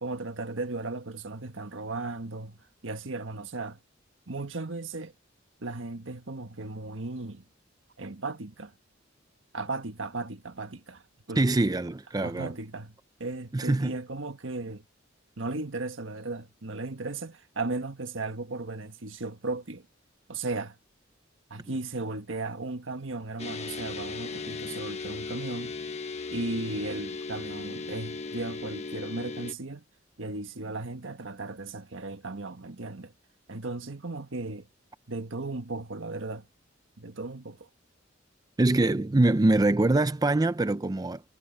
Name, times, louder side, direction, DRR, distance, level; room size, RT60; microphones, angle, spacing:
voice 1, 0.0-3.8 4.3-5.1 5.6-7.4 8.0-8.7 9.5-11.0 11.3-11.4 12.2-12.9 13.2-14.8 15.4-19.8 20.3-20.7 21.5-25.7 26.3-29.8 30.2-33.1 33.5-34.7 35.1-36.4 37.0-37.7, right 2 dB, 70° right, 1.5 m, -36 dB
voice 2, 11.4-12.5 13.5-14.0 38.6-41.2, right 2 dB, 20° right, 0.5 m, -24 dB
sound 1, 23.4-29.5, left 4 dB, 35° left, 1.3 m, -37 dB
head